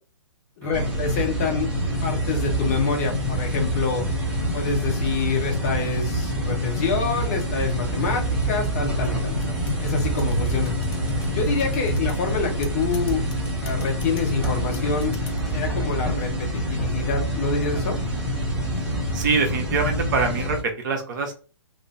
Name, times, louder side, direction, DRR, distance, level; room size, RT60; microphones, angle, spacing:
voice 1, 0.6-1.7 2.0-4.0 4.5-9.4 9.8-10.7 11.3-13.2 13.6-15.1 15.5-18.0, left 4 dB, 30° left, 1 dB, 0.8 m, -26 dB
sound 1, 0.7-20.6, equal, 5° right, 0.9 m, -26 dB
sound 2, 1.9-15.1, right 2 dB, 25° right, 1.1 m, -34 dB
sound 3, 5.2-7.5 8.2-11.3 11.6-12.2 12.6-15.6, left 3 dB, 55° left, 1.3 m, -46 dB
voice 2, 19.1-21.3, right 4 dB, 40° right, 2 dB, 0.8 m, -24 dB
2.6 x 2.3 x 3.1 m, 0.35 s
figure-of-eight pair, 125°, 15 cm